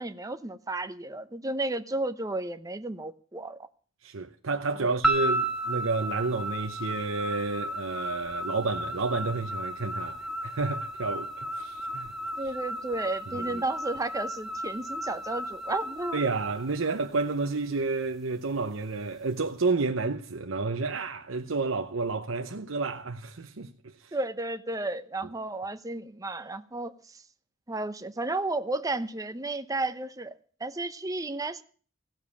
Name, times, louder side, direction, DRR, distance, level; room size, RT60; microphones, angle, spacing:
voice 1, 0.0-3.6 4.8-4.9 12.4-16.2 24.1-26.9 27.7-31.6, right 2 dB, 15° right, 0.8 m, -33 dB
voice 2, 4.0-12.1 13.3-13.6 16.1-23.7 24.0-24.2, right 3 dB, 85° right, 0.8 m, -30 dB
sound 1, 5.0-17.3, right 1 dB, ahead, 2.0 m, -33 dB
16.0 x 7.3 x 8.5 m
head